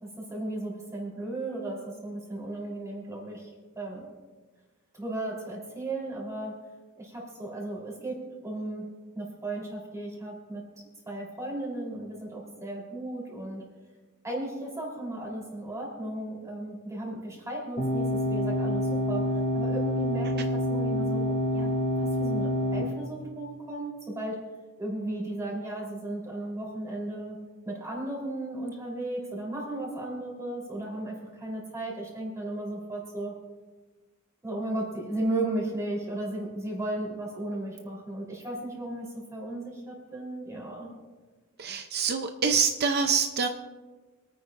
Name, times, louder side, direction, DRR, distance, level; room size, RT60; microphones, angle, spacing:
voice 1, 0.0-3.5 3.8-4.0 4.9-6.5 7.0-8.8 9.1-10.6 11.1-13.6 14.2-19.2 19.5-21.7 22.0-24.4 24.8-27.4 27.7-33.3 34.4-40.9, right 1 dB, 15° right, -3 dB, 3.7 m, -35 dB
sound 1, 17.8-22.8, equal, 40° left, 2.8 m, -27 dB
voice 2, 41.6-43.5, right 5 dB, 50° right, 6 dB, 0.6 m, -26 dB
27.0 x 9.4 x 2.6 m, 1.3 s
head